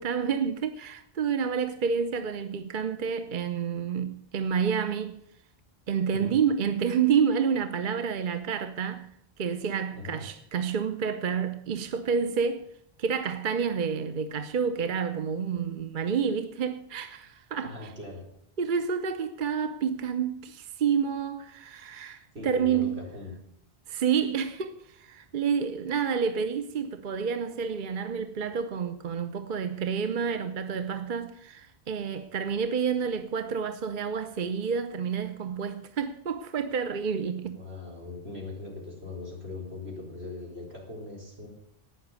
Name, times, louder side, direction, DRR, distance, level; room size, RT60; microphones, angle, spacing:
voice 1, 0.0-5.2 5.9-9.1 9.4-12.7 13.0-17.9 18.6-23.0 23.9-37.6, right 6 dB, 55° right, 0.9 m, -29 dB
voice 2, 9.9-10.3 17.6-18.3 22.3-23.3 37.5-41.5, left 3 dB, 85° right, 4.7 m, -40 dB
12.0 x 9.2 x 9.6 m
omnidirectional pair, 1.0 m